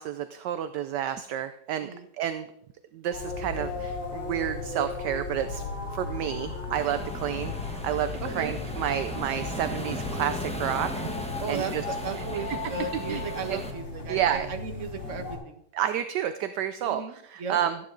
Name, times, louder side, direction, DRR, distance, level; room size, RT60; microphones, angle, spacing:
voice 1, 0.0-1.9 2.2-2.5 2.9-5.6 5.9-11.0 11.5-11.8 12.1-12.6 13.1-13.2 13.5-13.6 14.1-14.5 15.7-17.8, right 10 dB, 70° right, 10 dB, 1.1 m, -30 dB
sound 1, 3.1-15.4, left 3 dB, 60° left, 6.2 m, -36 dB
sound 2, 6.7-13.7, equal, 5° left, 0.8 m, -37 dB
voice 2, 8.2-8.5 11.4-15.6 16.8-17.1 17.4-17.6, right 5 dB, 40° right, 6 dB, 1.5 m, -35 dB
14.5 x 9.7 x 3.9 m, 0.72 s
omnidirectional pair, 2.1 m